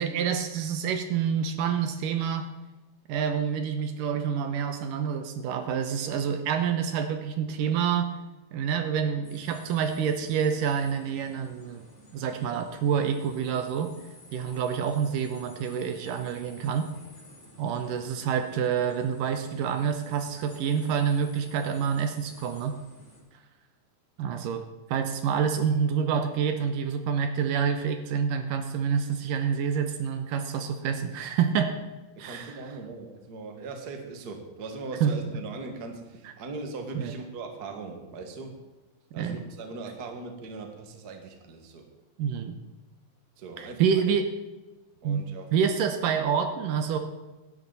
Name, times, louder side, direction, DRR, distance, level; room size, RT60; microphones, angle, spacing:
voice 1, 0.0-2.5 3.1-8.1 8.5-11.8 12.1-13.9 14.3-16.9 17.6-22.8 24.2-31.7 32.2-32.5 35.0-35.1 37.0-37.1 39.2-39.4 42.2-42.6 43.6-44.3 45.0-45.2 45.5-47.0, right 7 dB, 75° right, 7 dB, 2.4 m, -27 dB
sound 1, 9.2-23.2, equal, 15° left, 5.6 m, -52 dB
voice 2, 32.2-38.5 39.1-41.9 43.4-44.0 45.0-45.5, right 3 dB, 40° right, 4 dB, 1.5 m, -39 dB
17.0 x 12.0 x 4.1 m, 1.1 s
omnidirectional pair, 4.1 m